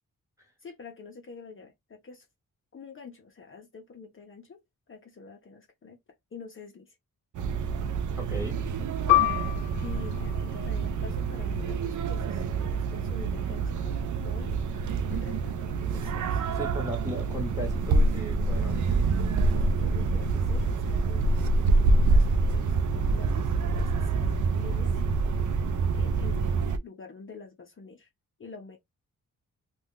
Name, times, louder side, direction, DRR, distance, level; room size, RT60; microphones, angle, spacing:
voice 1, 0.6-2.3 2.7-4.6 4.9-6.0 6.3-7.0 9.8-14.0 14.2-14.6 15.1-16.4 19.5-25.0 25.9-28.1 28.4-28.8, left 5 dB, 40° left, 0.7 m, -46 dB
sound 1, 7.3-26.8, right 3 dB, 65° right, 0.5 m, -26 dB
voice 2, 8.1-8.6 16.3-18.8, equal, 10° right, 1.2 m, -37 dB
Piano, 9.1-14.1 14.5-14.6 15.4-15.8, left 17 dB, 85° left, 0.6 m, -30 dB
2.4 x 2.3 x 3.5 m
wide cardioid pair, 130°, 33 cm